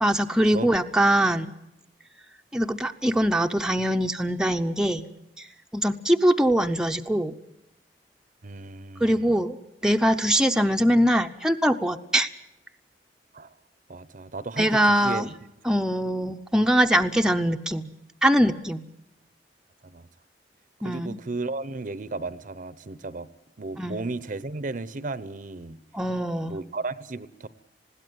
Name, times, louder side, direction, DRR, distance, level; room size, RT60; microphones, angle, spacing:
voice 1, 0.0-1.5 2.5-5.0 5.4-5.5 5.7-7.3 9.0-9.6 9.8-12.3 14.6-15.3 15.6-17.9 18.2-18.8 20.8-21.2 23.8-24.0 25.9-26.6, equal, 5° right, 4 dB, 0.7 m, -22 dB
voice 2, 8.4-9.4 13.3-13.5 13.9-15.3 19.8-20.1 20.8-23.3 23.6-25.8 26.5-27.5, right 3 dB, 50° right, 15 dB, 0.8 m, -34 dB
20.5 x 16.5 x 9.3 m, 0.86 s
head